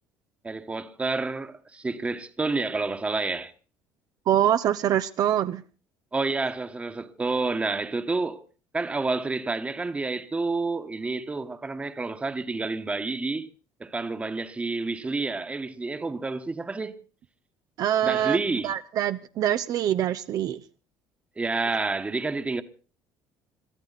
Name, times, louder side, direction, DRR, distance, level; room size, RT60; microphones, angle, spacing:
voice 1, 0.4-3.5 6.1-8.4 8.7-13.5 13.8-17.0 18.0-18.7 21.4-22.6, right 3 dB, 15° right, 1.3 m, -29 dB
voice 2, 4.3-5.6 17.8-18.4 18.6-20.6, right 11 dB, 55° right, 0.7 m, -24 dB
22.5 x 14.0 x 4.1 m
cardioid pair, 120°, 7 cm